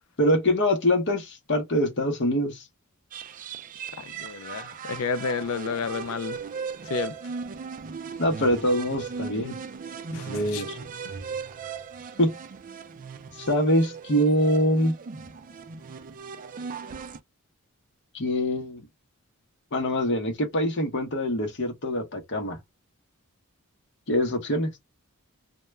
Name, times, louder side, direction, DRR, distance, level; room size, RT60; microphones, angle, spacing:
voice 1, 0.2-2.6 8.2-9.6 10.1-10.8 12.2-12.3 13.4-15.0 18.1-18.9 19.7-22.6 24.1-24.7, equal, 55° left, 0.8 m, -24 dB
sound 1, 3.1-17.2, right 5 dB, 40° right, 0.3 m, -38 dB
voice 2, 4.0-6.4 6.9-7.2 10.1-10.6, left 5 dB, 70° left, 0.4 m, -31 dB
2.2 x 2.2 x 3.0 m
head